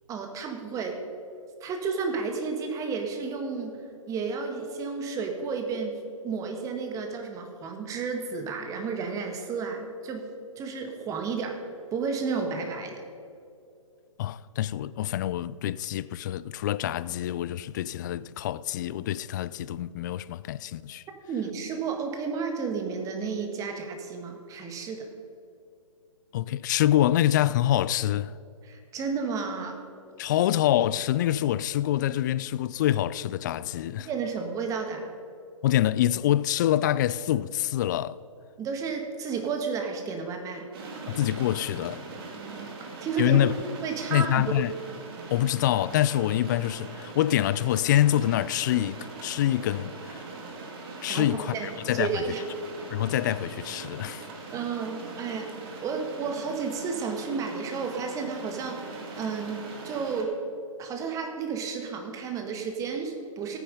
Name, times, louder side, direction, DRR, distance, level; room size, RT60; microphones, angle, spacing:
voice 1, 0.1-1.0 1.6-3.8 4.1-10.3 10.6-11.6 11.9-13.0 21.3-25.1 28.6-29.8 34.1-35.1 38.6-40.7 42.3-43.4 43.8-44.4 51.1-51.7 51.9-52.4 54.5-60.4 60.8-63.6, right 5 dB, 20° right, 1.6 m, -32 dB
voice 2, 14.2-21.0 26.3-28.3 30.2-34.1 35.6-38.2 41.1-42.1 43.2-43.5 44.1-44.7 45.3-50.2 51.0-52.2 52.9-54.3, left 12 dB, 35° left, 0.3 m, -26 dB
sound 1, 40.7-60.2, right 3 dB, 45° right, 2.4 m, -41 dB
16.0 x 9.3 x 5.2 m
figure-of-eight pair, 130°, 17 cm